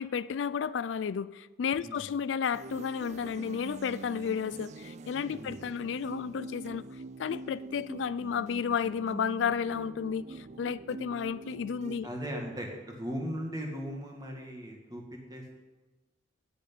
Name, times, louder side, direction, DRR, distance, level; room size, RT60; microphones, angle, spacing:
voice 1, 0.0-6.8 7.2-12.1, left 7 dB, 85° left, 17 dB, 0.4 m, -32 dB
sound 1, 2.5-12.0, right 3 dB, 40° right, 0.4 m, -45 dB
voice 2, 5.3-5.6 12.0-15.6, equal, 20° right, 1 dB, 2.0 m, -38 dB
8.3 x 8.1 x 8.8 m, 1.2 s
head